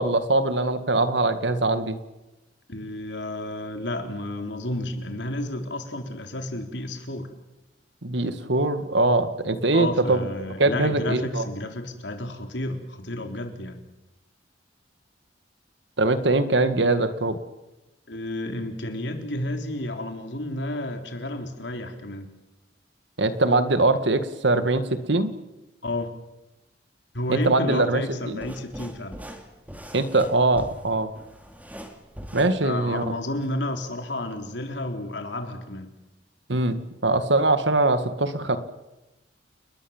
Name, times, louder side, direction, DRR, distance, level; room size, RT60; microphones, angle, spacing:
voice 1, 0.0-2.0 8.0-10.3 10.6-11.4 16.0-17.4 23.2-25.3 27.3-28.4 29.9-31.1 32.3-33.1 36.5-38.6, right 2 dB, 75° right, 10 dB, 1.9 m, -22 dB
voice 2, 2.7-7.3 9.7-13.8 18.1-22.3 25.8-26.1 27.1-29.2 32.6-35.9, left 1 dB, 75° left, 4 dB, 3.7 m, -31 dB
sound 1, 28.3-33.5, equal, 10° right, 2.6 m, -42 dB
30.0 x 20.5 x 7.3 m, 1.0 s
head